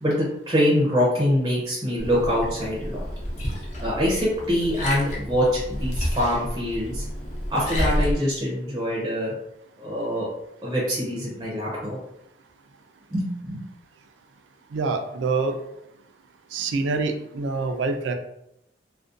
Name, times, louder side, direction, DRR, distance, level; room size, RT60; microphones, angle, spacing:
voice 1, 0.0-3.1 3.8-7.0 7.5-9.3 9.8-10.3 10.6-12.0 13.1-13.6, equal, 20° right, -5 dB, 0.5 m, -24 dB
Liquid, 2.0-8.1, equal, 40° left, 0.5 m, -30 dB
voice 2, 14.7-15.6 16.5-18.1, right 4 dB, 80° right, 6 dB, 0.3 m, -26 dB
2.4 x 2.1 x 2.4 m, 0.82 s
head